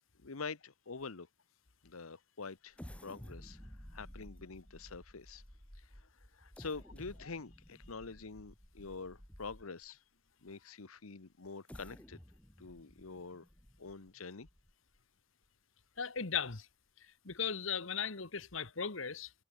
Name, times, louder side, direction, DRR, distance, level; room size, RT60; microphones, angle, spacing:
voice 1, 0.2-1.3 1.8-5.4 5.8-5.9 6.3-10.0 10.4-12.2 12.6-13.4 13.8-14.5, left 4 dB, 90° left, 1.1 m, -46 dB
sound 1, 2.7-9.9 10.5-10.6 11.4-15.0 15.4-15.5 16.0-16.2, equal, 5° left, 1.5 m, -54 dB
voice 2, 16.0-16.7 17.2-19.3, left 7 dB, 70° left, 1.6 m, -37 dB
head